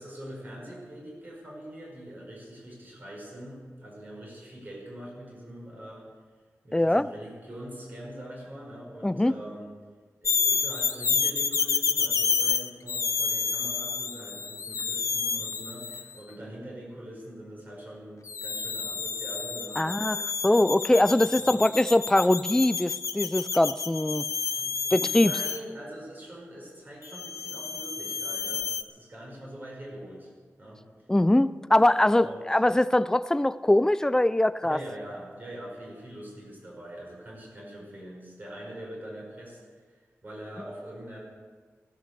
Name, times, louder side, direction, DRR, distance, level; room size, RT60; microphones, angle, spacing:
voice 1, 0.0-6.0 6.6-9.7 10.2-20.2 21.4-21.8 24.5-30.3 30.6-30.8 32.2-32.4 34.6-41.2, right 1 dB, 35° right, -3 dB, 5.4 m, -43 dB
voice 2, 6.7-7.1 9.0-9.3 19.8-20.2 20.4-24.2 24.9-25.3 31.1-34.8, left 1 dB, 10° left, 14 dB, 0.5 m, -22 dB
sound 1, 10.3-16.1 18.3-25.6 27.1-28.8, left 5 dB, 80° left, 0.7 m, -29 dB
16.0 x 12.5 x 6.9 m, 1.5 s
wide cardioid pair, 130°, 5 cm